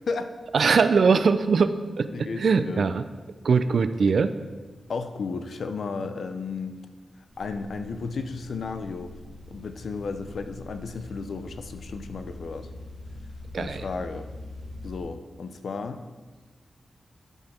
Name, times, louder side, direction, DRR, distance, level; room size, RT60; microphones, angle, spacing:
voice 1, 0.5-3.0 3.4-4.3 13.5-13.8, right 5 dB, 70° right, 12 dB, 0.5 m, -21 dB
voice 2, 2.1-2.9 4.9-6.8 7.4-9.2 9.5-12.7 13.6-14.3 14.8-16.0, left 4 dB, 75° left, 8 dB, 0.6 m, -33 dB
sound 1, 7.3-15.0, left 1 dB, 5° left, 2.2 m, -43 dB
12.0 x 5.5 x 4.4 m, 1.3 s
wide cardioid pair, 85°, 0 cm